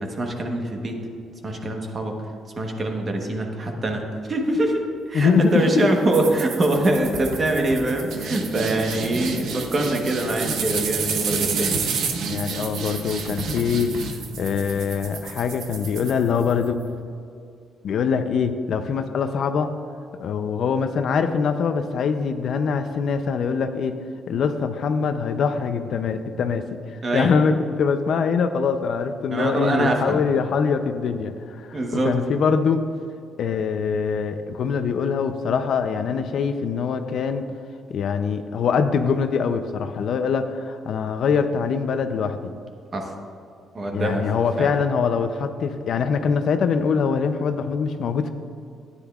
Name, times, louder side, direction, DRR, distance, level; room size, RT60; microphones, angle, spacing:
voice 1, 0.0-1.0 1.4-2.1 2.6-4.0 4.3-11.8 27.0-27.3 29.3-30.2 31.7-32.1 42.9-43.1 43.7-44.3 44.6-44.7, right 1 dB, 30° right, 2 dB, 1.1 m, -24 dB
voice 2, 5.1-5.9 12.3-13.9 14.3-16.8 17.8-19.7 20.2-24.0 24.3-26.8 27.1-32.8 33.4-37.5 37.9-42.5 43.9-48.3, left 6 dB, 55° left, 8 dB, 0.5 m, -23 dB
sound 1, 6.1-16.7, right 5 dB, 70° right, 0.9 m, -30 dB
13.5 x 9.9 x 2.4 m, 2.4 s
cardioid pair, 165°, 0 cm